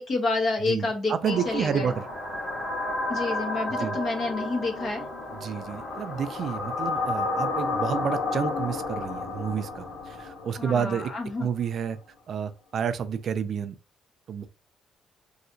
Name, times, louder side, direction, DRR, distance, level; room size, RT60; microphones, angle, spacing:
voice 1, 0.0-1.9 3.1-5.0 10.6-11.5, left 3 dB, 45° left, 1.0 m, -29 dB
voice 2, 0.7-2.0 3.8-4.0 5.4-11.1 11.4-12.0 12.3-13.8 14.3-14.5, right 7 dB, 50° right, 0.3 m, -30 dB
sound 1, 1.2-11.3, left 2 dB, 70° left, 1.4 m, -32 dB
3.2 x 2.8 x 2.6 m
cardioid pair, 150°, 0 cm